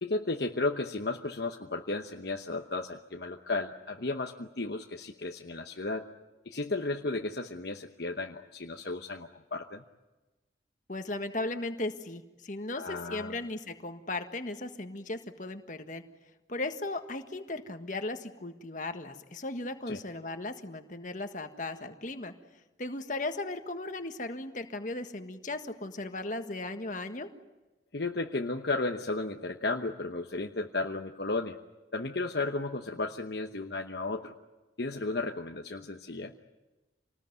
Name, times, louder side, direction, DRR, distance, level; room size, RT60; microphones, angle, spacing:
voice 1, 0.0-6.1 6.4-9.8 12.7-13.4 19.9-20.0 27.9-31.6 31.9-34.3 34.8-36.3, left 3 dB, 60° left, 3 dB, 1.0 m, -34 dB
voice 2, 10.9-16.0 16.5-22.3 22.8-27.3, left 2 dB, 45° left, 7 dB, 1.6 m, -37 dB
27.0 x 19.5 x 9.5 m, 1.1 s
head